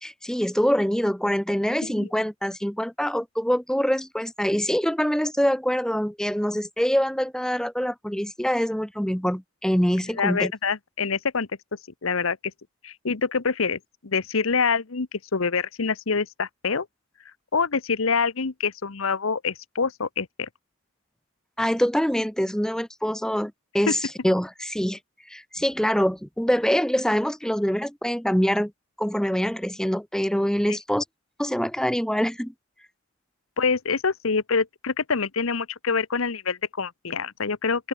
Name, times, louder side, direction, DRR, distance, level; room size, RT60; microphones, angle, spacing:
voice 1, 0.0-10.5 21.6-25.0 25.3-28.7 29.0-31.0 31.4-32.5, equal, 5° left, 1.0 m, -24 dB
voice 2, 10.2-11.5 12.0-12.4 12.8-16.9 17.5-20.5 23.9-24.0 30.7-30.8 33.6-37.9, left 5 dB, 90° left, 1.0 m, -26 dB
open air
head